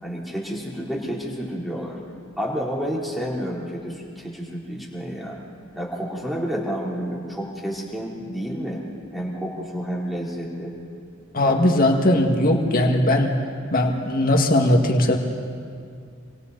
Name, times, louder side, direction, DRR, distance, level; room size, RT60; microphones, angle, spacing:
voice 1, 0.0-2.0 2.4-5.4 5.7-8.8 9.1-10.7, equal, ahead, -4 dB, 3.5 m, -30 dB
voice 2, 11.3-13.3 13.7-15.2, left 1 dB, 45° left, 2 dB, 2.0 m, -19 dB
27.0 x 24.5 x 4.1 m, 2.3 s
head